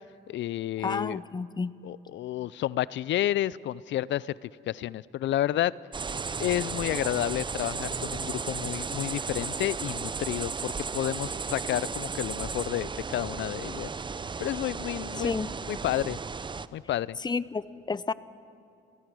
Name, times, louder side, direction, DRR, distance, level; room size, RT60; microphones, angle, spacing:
voice 1, 0.3-1.2 1.8-5.7 6.4-13.9 14.4-15.4 15.7-16.2 16.7-17.2, left 13 dB, 70° left, 21 dB, 0.4 m, -30 dB
voice 2, 0.8-1.7 15.2-15.5 17.2-18.1, left 4 dB, 20° left, 17 dB, 0.6 m, -31 dB
sound 1, 5.9-16.7, right 5 dB, 25° right, 0.6 m, -34 dB
29.5 x 16.5 x 6.2 m, 2.7 s
cardioid pair, 90°, 20 cm